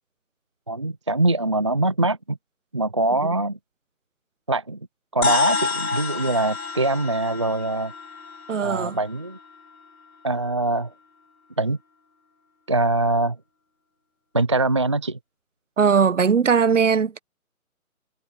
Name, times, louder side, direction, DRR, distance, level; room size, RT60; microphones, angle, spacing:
voice 1, 0.7-2.4 2.7-3.6 4.5-4.8 5.1-7.9 8.6-9.4 10.2-10.9 11.6-11.8 12.7-13.4 14.3-15.2, right 2 dB, 20° right, 0.6 m, -23 dB
sound 1, 5.2-9.8, left 4 dB, 75° left, 4.0 m, -28 dB
voice 2, 8.5-9.0 15.8-17.2, right 6 dB, 55° right, 1.5 m, -19 dB
figure-of-eight pair, 155°, 43 cm